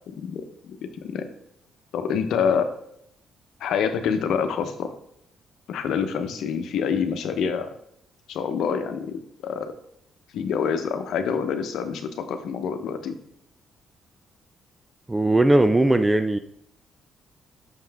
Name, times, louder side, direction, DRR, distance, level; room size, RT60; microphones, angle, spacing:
voice 1, 0.2-0.8 1.0-1.3 1.9-2.7 3.6-4.9 5.7-7.7 8.3-9.7 10.3-13.1, left 6 dB, 80° left, 7 dB, 0.8 m, -26 dB
voice 2, 15.1-16.4, right 1 dB, 15° right, 9 dB, 0.4 m, -19 dB
6.3 x 5.6 x 3.5 m, 0.74 s
cardioid pair, 90°, 0 cm